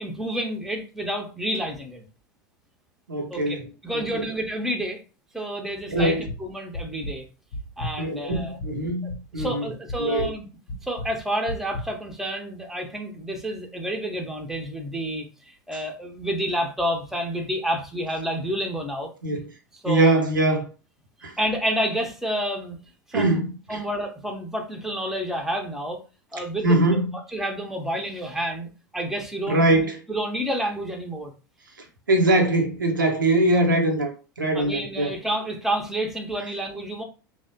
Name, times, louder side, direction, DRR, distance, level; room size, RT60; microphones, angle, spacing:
voice 1, 0.0-2.0 3.3-5.0 5.3-7.2 7.8-8.6 9.4-10.5 10.8-19.1 19.8-20.2 21.4-22.8 23.1-23.4 23.7-26.0 26.3-26.7 27.3-29.8 30.1-31.3 34.5-37.0, right 1 dB, 5° right, 0.6 m, -29 dB
voice 2, 3.1-4.2 5.9-6.3 8.0-9.7 10.0-10.3 19.2-19.4 19.9-20.7 21.2-21.4 23.1-23.8 26.6-27.1 29.5-30.0 32.1-35.2, right 1 dB, 80° right, 0.6 m, -22 dB
sound 1, 6.0-6.4 6.7-7.1 7.5-8.8 9.1-9.5 9.9-10.3 10.7-11.1 11.5-11.9, left 1 dB, 60° left, 0.5 m, -32 dB
3.0 x 2.0 x 2.7 m
figure-of-eight pair, 80°, 11 cm